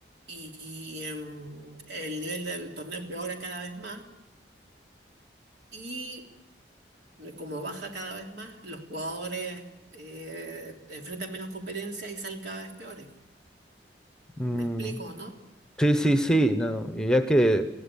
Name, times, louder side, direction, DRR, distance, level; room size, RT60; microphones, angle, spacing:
voice 1, 0.3-4.0 5.7-6.2 7.2-9.6 9.9-13.1 14.4-15.3, right 2 dB, 75° right, 2 dB, 3.2 m, -37 dB
voice 2, 14.4-14.9 15.8-17.6, right 1 dB, 5° left, 9 dB, 0.9 m, -23 dB
21.0 x 15.5 x 8.5 m, 0.96 s
head